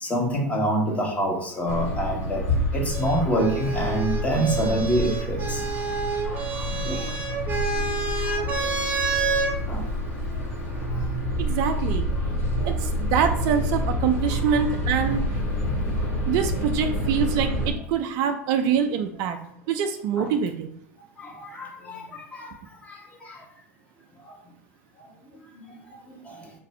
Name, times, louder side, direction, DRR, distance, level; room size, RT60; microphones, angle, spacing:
voice 1, 0.0-2.4 2.7-5.6 6.8-7.1 8.2-8.5 9.7-9.9 14.5-14.8 19.2-19.4 20.2-20.3 21.2-22.5 22.8-23.4 24.2-24.4 25.5-25.6 26.1-26.5, right 1 dB, 15° left, -1 dB, 1.1 m, -27 dB
sound 1, 1.7-17.7, equal, 70° left, 1.4 m, -28 dB
sound 2, 2.9-9.5 10.6-11.3, right 4 dB, 20° right, 0.9 m, -29 dB
voice 2, 11.4-12.1 12.7-15.2 16.3-19.4 19.7-20.7, right 7 dB, 50° right, 7 dB, 0.4 m, -25 dB
3.3 x 2.5 x 4.4 m, 0.68 s
hypercardioid pair, 90°, 8 cm